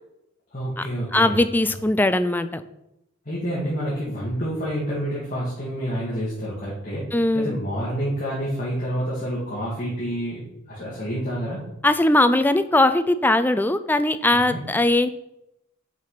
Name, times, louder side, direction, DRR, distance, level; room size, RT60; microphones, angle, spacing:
voice 1, 0.5-1.4 3.3-10.4 10.7-11.6 14.3-14.6, equal, 40° left, -8 dB, 2.3 m, -28 dB
voice 2, 1.1-2.6 7.1-7.5 11.8-15.1, left 2 dB, 10° left, 11 dB, 0.4 m, -20 dB
7.3 x 5.7 x 5.1 m, 0.86 s
head